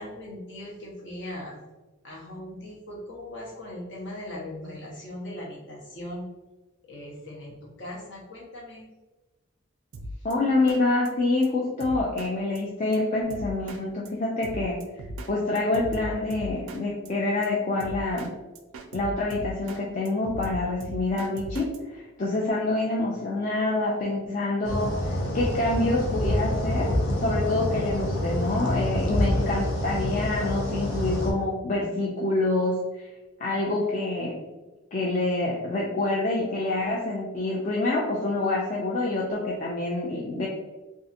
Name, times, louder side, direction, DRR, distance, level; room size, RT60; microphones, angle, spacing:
voice 1, 0.0-1.6 2.0-6.2 6.9-8.9 10.1-10.3, left 1 dB, 55° left, -3 dB, 0.8 m, -39 dB
Drum kit, 9.9-10.3 10.7-10.8 11.0-11.1 11.4-11.5 11.8-12.3 12.5-12.6 12.9-13.0 13.3-13.8 14.0-14.1 14.4-15.3 15.5-16.8 17.0-17.1 17.4-17.5 17.8-18.3 18.5-19.8 20.0-21.8, right 1 dB, 90° right, 0.4 m, -37 dB
voice 2, 10.2-14.8 15.3-18.3 18.9-33.1 33.4-34.3 34.9-40.5, left 2 dB, 40° left, -4 dB, 0.3 m, -27 dB
sound 1, 24.6-31.3, left 1 dB, 90° left, 0.6 m, -27 dB
2.7 x 2.4 x 2.4 m, 1.1 s
head